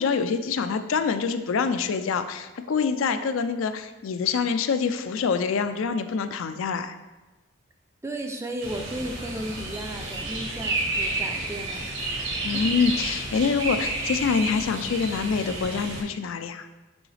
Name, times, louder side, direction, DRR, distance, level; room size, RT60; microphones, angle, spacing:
voice 1, 0.0-7.0 12.4-16.7, left 5 dB, 70° left, 10 dB, 0.4 m, -26 dB
voice 2, 8.0-12.3 12.5-12.8, right 1 dB, 15° right, 4 dB, 0.4 m, -35 dB
sound 1, 8.6-16.0, right 2 dB, 60° right, 1.3 m, -31 dB
6.1 x 4.8 x 3.3 m, 1.1 s
head